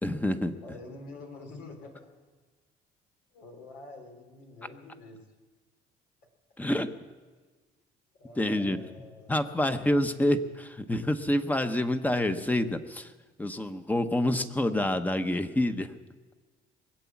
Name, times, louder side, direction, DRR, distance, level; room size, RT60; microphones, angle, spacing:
voice 1, 0.0-0.5 6.6-6.9 8.4-8.8 9.3-13.1 13.4-15.9, left 1 dB, 10° left, 9 dB, 0.9 m, -27 dB
voice 2, 0.6-2.1 3.3-5.3 8.2-9.3, left 2 dB, 80° left, 2 dB, 3.5 m, -47 dB
21.5 x 8.4 x 7.2 m, 1.4 s
cardioid pair, 110°, 17 cm